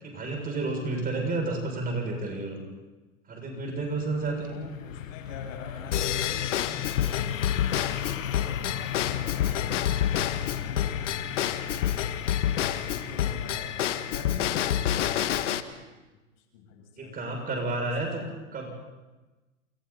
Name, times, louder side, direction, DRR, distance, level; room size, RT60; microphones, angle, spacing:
voice 1, 0.0-2.6 3.3-4.5 8.6-8.8 17.0-18.2 18.5-18.7, right 2 dB, 20° right, 1 dB, 7.4 m, -31 dB
sound 1, 3.6-15.3, left 10 dB, 85° left, 0.9 m, -36 dB
voice 2, 4.3-12.0 12.6-15.7 16.4-18.4, left 4 dB, 50° left, 1 dB, 7.8 m, -44 dB
Drum kit / Drum / Bell, 5.9-15.6, left 11 dB, 70° left, 1.5 m, -28 dB
28.5 x 28.5 x 4.3 m, 1.1 s
hypercardioid pair, 110°, 38 cm